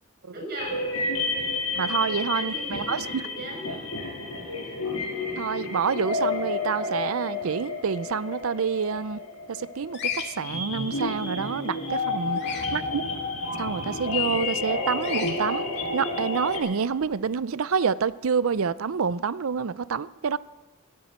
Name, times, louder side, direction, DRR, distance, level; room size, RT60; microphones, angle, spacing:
voice 1, 0.3-0.7 2.2-3.9 12.6-12.9, right 1 dB, 45° right, 5.7 m, -38 dB
sound 1, 0.6-16.6, left 3 dB, 85° left, 6.2 m, -30 dB
voice 2, 1.8-3.2 5.4-9.2 9.5-13.0 13.6-20.4, right 6 dB, 75° right, 0.5 m, -28 dB
Bird vocalization bird call bird song, 9.9-10.3 12.3-12.7 15.0-15.3, left 8 dB, 50° left, 2.3 m, -31 dB
14.5 x 12.5 x 8.1 m
head